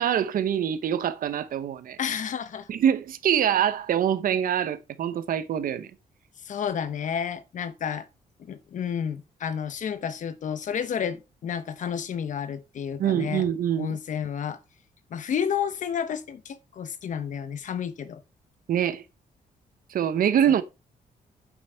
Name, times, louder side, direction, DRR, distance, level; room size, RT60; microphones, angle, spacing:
voice 1, 0.0-2.0 2.7-5.9 13.0-14.0 18.7-19.0 19.9-20.6, right 9 dB, 65° right, 0.9 m, -24 dB
voice 2, 2.0-2.7 6.4-8.1 8.4-13.4 13.8-14.6 15.1-18.2 20.5-20.6, left 8 dB, 55° left, 0.9 m, -31 dB
9.1 x 7.2 x 3.5 m
wide cardioid pair, 155°, 16 cm